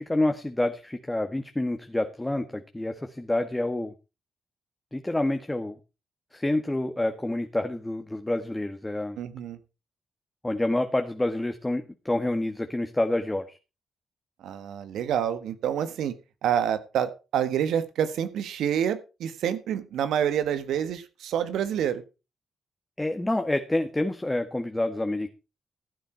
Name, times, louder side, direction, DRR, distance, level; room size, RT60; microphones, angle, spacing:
voice 1, 0.0-3.9 4.9-5.8 6.3-9.2 10.4-13.6 23.0-25.3, left 1 dB, 15° left, 7 dB, 1.7 m, -28 dB
voice 2, 9.2-9.6 14.4-16.1 16.4-22.0, right 9 dB, 80° right, 12 dB, 1.4 m, -27 dB
15.0 x 9.1 x 4.4 m, 0.30 s
supercardioid pair, 50°, 0 cm